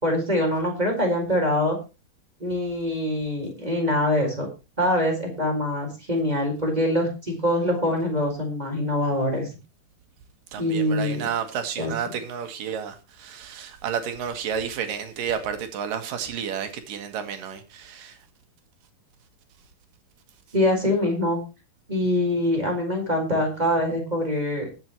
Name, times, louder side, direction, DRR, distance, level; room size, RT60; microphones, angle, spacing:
voice 1, 0.0-1.8 2.4-4.5 4.8-9.4 10.6-11.2 11.8-11.9 20.5-21.4 21.9-24.7, left 1 dB, 10° right, 4.3 m, -24 dB
voice 2, 10.5-18.2, right 7 dB, 65° right, 3.2 m, -31 dB
20.0 x 8.2 x 3.1 m
omnidirectional pair, 4.3 m